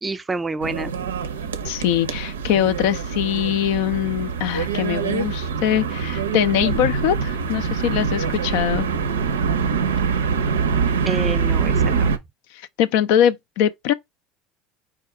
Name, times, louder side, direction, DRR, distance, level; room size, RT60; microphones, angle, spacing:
voice 1, 0.0-0.9 11.1-12.2, right 3 dB, 20° right, 0.5 m, -28 dB
sound 1, 0.6-12.2, right 6 dB, 90° right, 0.4 m, -24 dB
voice 2, 1.6-8.9 12.5-13.9, left 10 dB, 70° left, 0.4 m, -22 dB
4.7 x 2.3 x 4.7 m
hypercardioid pair, 75°, 0 cm